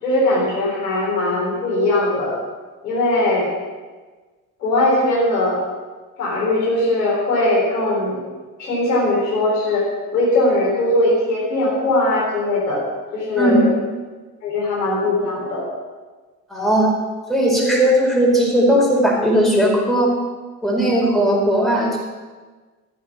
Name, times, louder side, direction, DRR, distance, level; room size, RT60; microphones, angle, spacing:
voice 1, 0.0-2.3 2.8-3.5 4.6-5.6 6.2-8.2 8.6-9.9 10.1-12.8 13.1-13.7 14.4-15.6, left 2 dB, 75° left, -4 dB, 3.6 m, -19 dB
voice 2, 16.5-16.9 17.3-20.1 20.6-22.0, right 1 dB, ahead, -3 dB, 4.6 m, -17 dB
14.0 x 7.8 x 6.0 m, 1.4 s
figure-of-eight pair, 50°, 48 cm